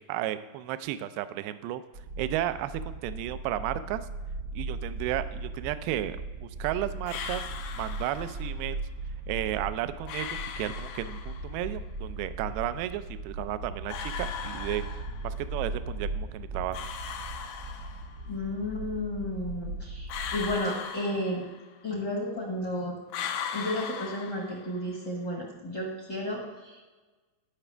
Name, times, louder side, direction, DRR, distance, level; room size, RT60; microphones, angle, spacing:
voice 1, 0.1-1.8 2.2-4.0 4.6-7.4 7.8-8.8 9.3-14.8 15.2-16.9, right 13 dB, 80° right, 12 dB, 2.4 m, -33 dB
sound 1, 1.9-20.5, right 2 dB, 55° right, 1.3 m, -38 dB
sound 2, 7.1-8.5 10.1-11.6 13.9-15.4 16.7-18.3 20.1-21.8 23.1-24.9, left 7 dB, 80° left, 2.1 m, -38 dB
voice 2, 18.3-21.4 21.8-22.9 23.5-26.8, left 1 dB, 50° left, -2 dB, 1.2 m, -32 dB
17.5 x 6.0 x 3.3 m, 1.3 s
omnidirectional pair, 4.7 m